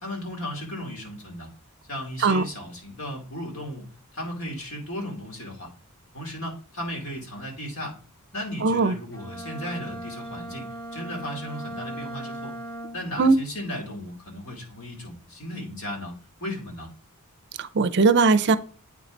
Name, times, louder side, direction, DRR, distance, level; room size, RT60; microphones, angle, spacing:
voice 1, 0.0-1.5 1.9-3.9 4.1-5.7 6.1-8.0 8.3-12.6 12.9-16.1 16.4-16.9, left 1 dB, 65° left, 2.9 m, -35 dB
voice 2, 8.6-8.9 13.2-13.4 17.6-18.6, right 4 dB, 50° right, 0.5 m, -19 dB
Bowed string instrument, 9.1-13.2, right 1 dB, 10° left, 1.1 m, -38 dB
8.4 x 4.7 x 3.9 m
head